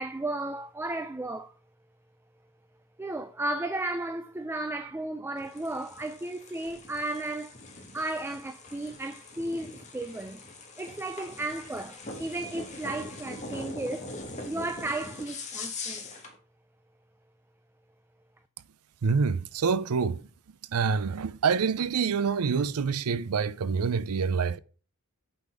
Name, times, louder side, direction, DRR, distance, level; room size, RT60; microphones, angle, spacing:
voice 1, 0.0-1.5 3.0-7.6 7.9-10.4 10.8-14.1 14.5-16.1, right 2 dB, 10° right, 0.3 m, -34 dB
sound 1, 5.4-16.4, left 3 dB, 35° left, 1.6 m, -42 dB
voice 2, 19.0-20.2 20.7-24.6, right 5 dB, 90° right, 0.5 m, -26 dB
8.6 x 4.0 x 4.7 m
head